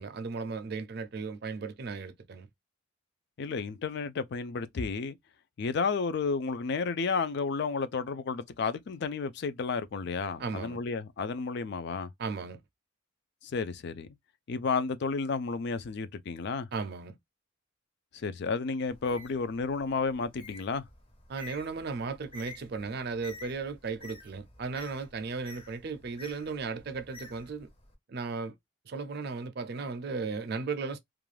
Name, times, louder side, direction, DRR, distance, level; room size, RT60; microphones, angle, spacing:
voice 1, 0.0-2.5 10.4-10.8 12.2-12.6 16.7-17.2 21.3-27.7 28.1-28.5 28.9-31.0, right 4 dB, 50° right, 0.4 m, -36 dB
voice 2, 3.4-5.2 5.6-12.1 13.4-14.1 14.5-16.7 18.1-20.8, left 4 dB, 55° left, 0.4 m, -32 dB
Bird, 18.9-27.9, left 3 dB, 25° left, 0.7 m, -51 dB
2.4 x 2.2 x 3.1 m
head